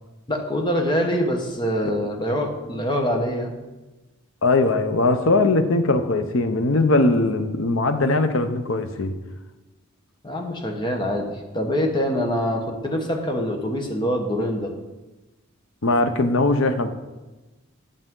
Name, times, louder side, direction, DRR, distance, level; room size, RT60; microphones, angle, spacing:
voice 1, 0.3-3.5 10.2-14.7, equal, 20° left, 1.2 m, -24 dB
voice 2, 4.4-9.1 15.8-16.9, left 2 dB, 65° left, 0.8 m, -20 dB
12.0 x 6.6 x 3.8 m
head